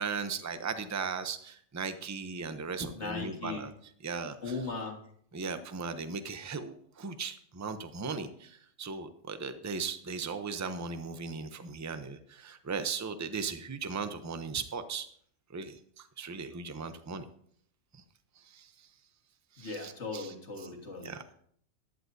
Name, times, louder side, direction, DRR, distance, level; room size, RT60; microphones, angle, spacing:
voice 1, 0.0-3.7 4.0-4.6 5.3-15.1 15.5-17.3 17.9-18.0 18.4-18.7 19.5-20.3 20.6-20.7 21.0-21.3, right 5 dB, 20° right, 10 dB, 0.5 m, -37 dB
voice 2, 2.9-3.6 4.4-5.0 19.6-21.1, left 4 dB, 55° left, 1 dB, 2.0 m, -38 dB
14.0 x 11.5 x 2.7 m, 0.62 s
omnidirectional pair, 1.4 m